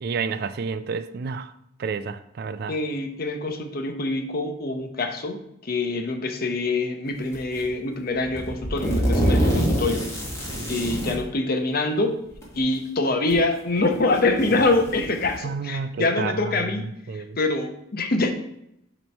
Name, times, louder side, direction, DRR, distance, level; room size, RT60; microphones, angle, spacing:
voice 1, 0.0-1.5 1.8-2.8 15.4-16.5 17.1-17.4, right 5 dB, 50° right, 0.3 m, -30 dB
voice 2, 2.7-10.1 10.7-12.2 12.5-18.3, left 2 dB, 45° left, 0.8 m, -25 dB
sound 1, 7.3-7.7 8.2-11.2 12.3-12.4 13.3-13.4 13.9-15.4, equal, 15° left, 1.5 m, -25 dB
7.3 x 3.1 x 5.4 m
head